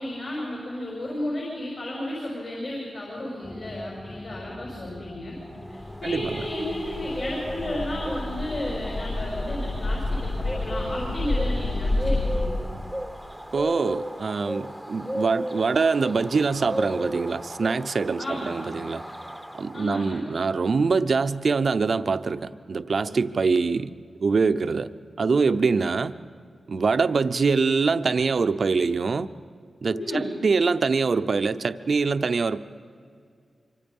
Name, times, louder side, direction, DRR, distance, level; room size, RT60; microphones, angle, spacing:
voice 1, 0.0-5.3 5.7-12.5 18.2-18.7 19.7-20.2 29.9-30.3, left 1 dB, 55° left, -4 dB, 6.4 m, -33 dB
sound 1, 3.4-12.9, left 1 dB, 25° left, 1.1 m, -41 dB
Bird, 5.5-20.2, equal, ahead, 0.9 m, -36 dB
sound 2, 6.0-12.5, left 2 dB, 70° left, 1.7 m, -29 dB
voice 2, 6.0-6.5 13.5-19.0 19.6-23.9 24.2-24.9 25.2-26.1 26.7-29.3 29.8-32.6, right 4 dB, 60° right, 11 dB, 0.7 m, -24 dB
25.5 x 25.0 x 5.5 m, 2.2 s
wide cardioid pair, 120°, 0 cm